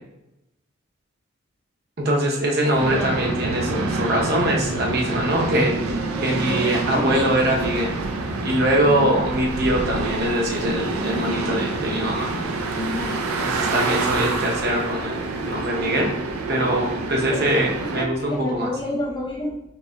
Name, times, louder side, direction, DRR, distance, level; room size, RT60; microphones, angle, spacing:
voice 1, 2.0-8.0 8.4-12.3 13.4-15.2 15.4-16.1 16.5-18.7, right 1 dB, 45° right, -1 dB, 0.8 m, -23 dB
sound 1, 2.7-18.1, right 3 dB, 90° right, 0.5 m, -27 dB
voice 2, 2.8-3.3 5.9-7.2 8.9-9.3 12.8-13.2 17.2-19.6, left 1 dB, 20° left, -4 dB, 0.6 m, -30 dB
5.3 x 3.3 x 2.3 m, 0.88 s
head